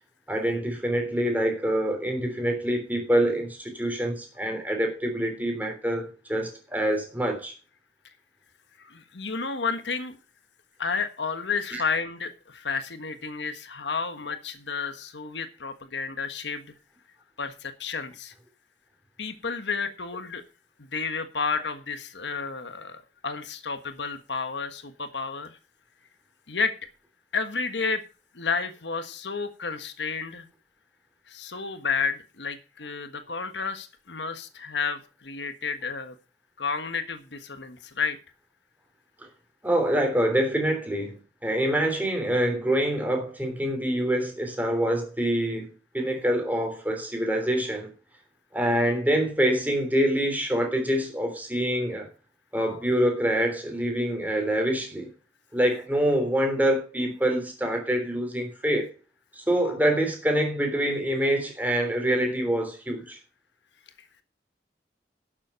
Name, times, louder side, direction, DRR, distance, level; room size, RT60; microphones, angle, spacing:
voice 1, 0.3-7.5 11.7-11.8 39.2-39.3 39.6-41.2 41.4-47.9 48.5-52.1 52.5-55.1 55.5-58.9 59.3-63.2, right 1 dB, 10° right, 3.5 m, -25 dB
voice 2, 8.8-10.2 10.8-16.7 17.4-18.3 19.2-20.4 20.8-25.6 26.5-26.8 27.3-28.0 28.3-30.5 31.3-36.2 36.6-38.2, left 5 dB, 90° left, 1.4 m, -31 dB
12.0 x 7.4 x 5.6 m
head